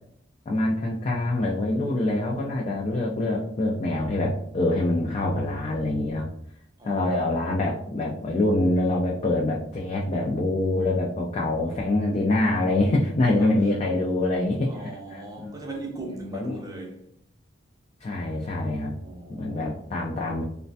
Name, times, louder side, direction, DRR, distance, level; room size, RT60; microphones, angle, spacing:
voice 1, 0.5-6.3 6.8-14.7 15.1-15.5 16.3-16.6 18.0-18.9 19.3-20.4, left 2 dB, 35° left, 0.3 m, -25 dB
voice 2, 6.8-7.2 13.4-13.6 14.7-17.1 19.0-19.8, right 2 dB, 20° right, 0.5 m, -38 dB
3.1 x 2.1 x 2.6 m
head